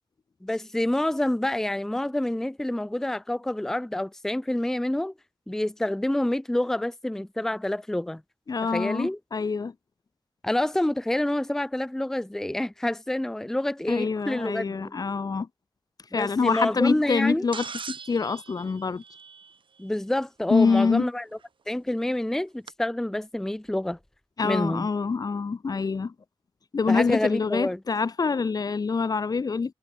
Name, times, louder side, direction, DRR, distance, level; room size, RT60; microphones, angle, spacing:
voice 1, 0.4-5.1 5.5-8.2 8.7-9.2 10.4-14.9 16.1-17.5 19.8-21.2 21.7-24.0 24.4-24.9 26.9-27.8, left 1 dB, 5° left, 0.5 m, -27 dB
voice 2, 8.5-9.7 13.9-15.5 16.1-19.0 20.5-21.0 24.4-26.1 26.7-29.7, left 4 dB, 45° left, 0.8 m, -25 dB
sound 1, 17.5-19.8 21.4-21.5 22.7-22.8, right 6 dB, 65° right, 1.3 m, -40 dB
wide cardioid pair, 130°, 9 cm